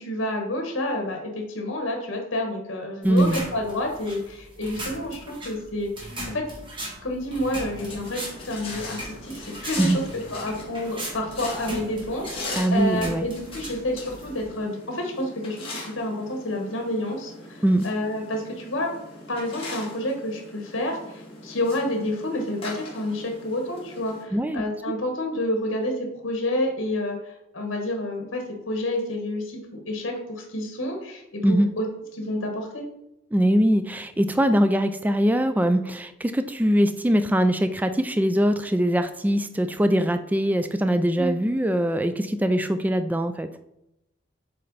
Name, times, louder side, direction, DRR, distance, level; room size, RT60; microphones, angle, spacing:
voice 1, 0.0-6.4 7.0-15.6 15.9-18.9 19.3-31.8 32.2-32.8 41.2-41.3, left 1 dB, 75° left, 2 dB, 1.3 m, -29 dB
voice 2, 3.0-3.5 9.8-10.0 12.6-13.3 17.6-17.9 24.3-24.6 31.4-31.7 33.3-43.5, equal, 10° right, 9 dB, 0.3 m, -22 dB
sound 1, 3.0-14.5, right 1 dB, 25° right, 1.7 m, -39 dB
sound 2, 7.6-24.2, left 2 dB, 30° left, 1.9 m, -40 dB
7.6 x 4.3 x 4.0 m, 0.85 s
head